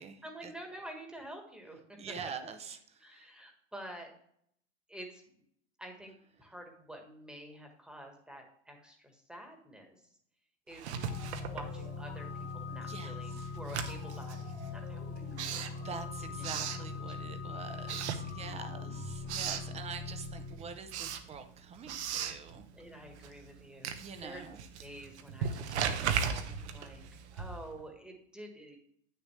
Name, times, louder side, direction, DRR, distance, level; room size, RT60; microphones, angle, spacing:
voice 1, 0.2-2.0 3.0-4.1 4.9-5.2 5.8-9.9 10.7-15.5 16.2-16.8 17.7-17.8 18.4-19.1 19.3-19.8 22.7-24.0 24.2-24.4 24.8-27.0 27.3-28.8, right 1 dB, ahead, 3 dB, 1.4 m, -49 dB
voice 2, 2.0-3.3 12.8-13.2 15.7-22.7 24.0-24.6, right 6 dB, 20° right, 9 dB, 0.6 m, -45 dB
Writing, 10.7-12.3 12.6-17.4 17.8-18.8 19.1-19.7 20.2-27.8, right 7 dB, 70° right, 1.0 m, -38 dB
sound 1, 10.9-20.6, left 4 dB, 85° left, 2.6 m, -41 dB
8.3 x 6.6 x 3.2 m, 0.67 s
supercardioid pair, 130°, 35 cm